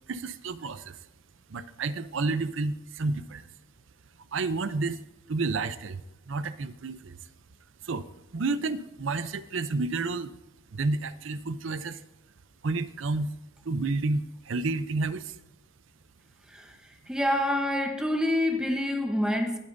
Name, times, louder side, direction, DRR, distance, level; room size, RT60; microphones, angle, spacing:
voice 1, 0.1-1.0 1.5-3.5 4.3-5.0 5.3-7.2 7.8-8.1 8.3-10.3 10.7-12.0 12.6-13.3 13.6-15.4, right 3 dB, 70° right, 0.6 m, -30 dB
voice 2, 17.1-19.6, left 1 dB, 5° right, 0.9 m, -27 dB
19.0 x 8.6 x 2.6 m
head